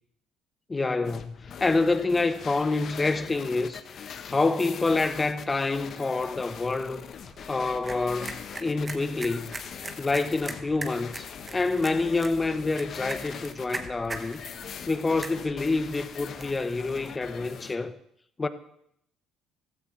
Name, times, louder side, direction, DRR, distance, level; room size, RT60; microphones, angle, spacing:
voice 1, 0.7-3.8 4.3-7.0 7.5-9.5 10.0-14.4 14.9-18.0 18.4-18.5, left 3 dB, 25° left, 0.9 m, -27 dB
sound 1, 1.0-17.8, left 7 dB, 55° left, 0.9 m, -42 dB
sound 2, 7.1-16.6, right 3 dB, 25° right, 1.3 m, -42 dB
15.0 x 13.0 x 3.2 m
supercardioid pair, 85°, 0 cm